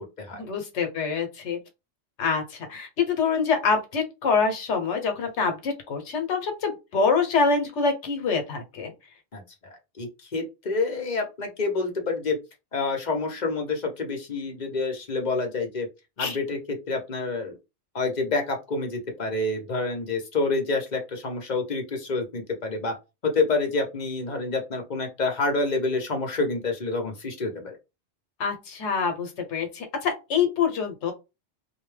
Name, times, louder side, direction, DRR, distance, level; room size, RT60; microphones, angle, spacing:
voice 1, 0.3-1.6 2.2-8.9 16.2-16.4 28.4-31.1, left 5 dB, 75° left, 5 dB, 1.0 m, -25 dB
voice 2, 10.0-12.4 12.7-15.9 16.2-17.6 17.9-22.9 23.2-27.8, left 3 dB, 45° left, 3 dB, 0.8 m, -28 dB
2.6 x 2.2 x 3.1 m, 0.25 s
omnidirectional pair, 1.2 m